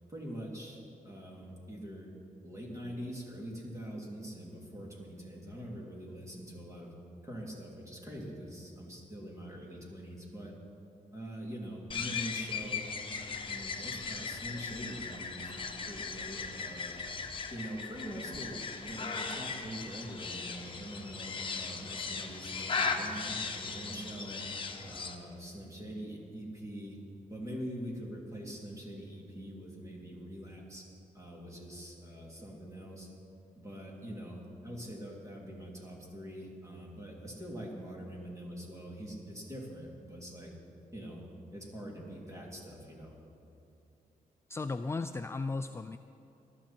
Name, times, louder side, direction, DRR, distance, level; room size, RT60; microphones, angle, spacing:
voice 1, 0.1-2.1 2.4-6.9 7.2-10.5 11.1-12.9 13.5-15.6 15.9-17.0 17.5-24.4 24.8-27.0 27.3-30.8 31.1-33.1 33.5-40.5 40.9-41.2 41.5-43.1, equal, 20° right, -2 dB, 3.1 m, -44 dB
sound 1, 11.9-25.2, left 5 dB, 35° left, 1.1 m, -38 dB
voice 2, 44.5-46.0, left 3 dB, 20° left, 9 dB, 0.3 m, -35 dB
19.5 x 12.5 x 4.4 m, 2.9 s
wide cardioid pair, 125°, 14 cm